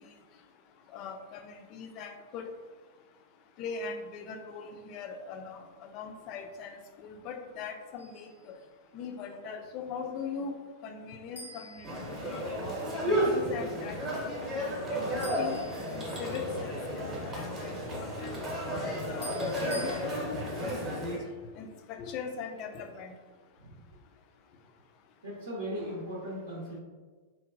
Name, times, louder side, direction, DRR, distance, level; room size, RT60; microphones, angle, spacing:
voice 1, 0.9-2.5 3.6-8.6 8.9-10.5 10.8-11.9 12.2-12.5 12.9-14.3 14.9-15.6 15.9-18.4 18.6-20.2 20.8-21.1 21.6-23.1, left 5 dB, 40° left, 5 dB, 0.3 m, -41 dB
sound 1, 8.0-8.4 11.4-12.7 15.2-16.5 19.2-20.0, equal, 80° left, 0.6 m, -47 dB
sound 2, 11.8-21.2, equal, 25° right, 0.8 m, -33 dB
voice 2, 25.2-26.8, equal, 70° right, -6 dB, 0.6 m, -38 dB
2.9 x 2.2 x 2.5 m, 1.4 s
figure-of-eight pair, 95°, 0 cm